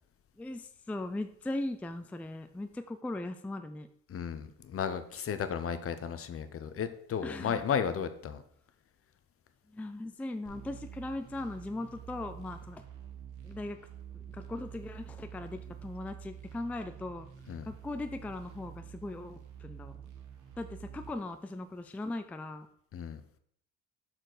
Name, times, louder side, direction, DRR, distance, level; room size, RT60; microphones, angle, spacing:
voice 1, 0.4-3.9 7.2-7.7 9.7-12.8 13.4-13.8 14.1-17.3 17.7-19.9 20.6-22.7, left 2 dB, 5° left, 9 dB, 0.4 m, -39 dB
voice 2, 4.1-8.4 17.5-17.7 22.9-23.2, left 7 dB, 50° left, 11 dB, 0.7 m, -34 dB
sound 1, 10.5-21.1, right 9 dB, 85° right, 1.1 m, -48 dB
6.4 x 4.4 x 3.9 m, 0.66 s
cardioid pair, 90°, 30 cm